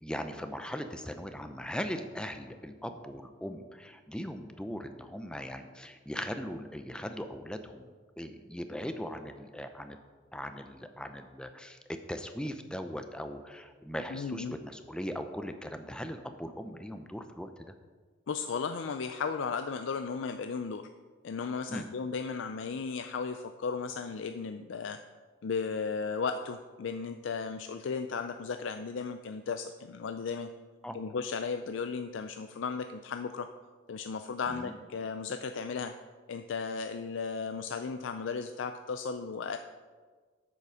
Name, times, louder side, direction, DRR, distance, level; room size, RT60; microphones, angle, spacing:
voice 1, 0.0-7.9 8.2-10.0 10.3-11.8 12.1-17.5 21.7-21.9 30.8-31.0 34.5-34.7, equal, 5° left, 8 dB, 0.5 m, -39 dB
voice 2, 14.1-14.6 18.3-20.8 21.2-25.0 25.4-30.5 30.9-33.5 33.9-35.9 36.3-39.6, left 5 dB, 75° left, 8 dB, 0.4 m, -35 dB
8.3 x 6.9 x 6.2 m, 1.5 s
head